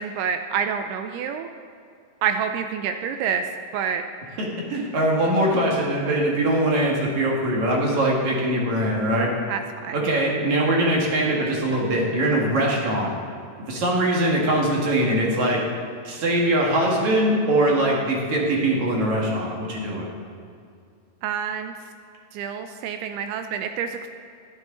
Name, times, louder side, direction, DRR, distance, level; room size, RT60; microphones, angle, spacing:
voice 1, 0.0-1.5 2.2-3.4 3.7-4.0 9.5-10.0 21.2-21.7 22.3-24.1, right 7 dB, 80° right, 7 dB, 2.4 m, -27 dB
voice 2, 4.4-9.3 9.9-13.1 13.7-15.6 16.0-20.1, right 1 dB, 55° right, -2 dB, 2.7 m, -22 dB
12.0 x 11.5 x 3.8 m, 2.4 s
omnidirectional pair, 4.6 m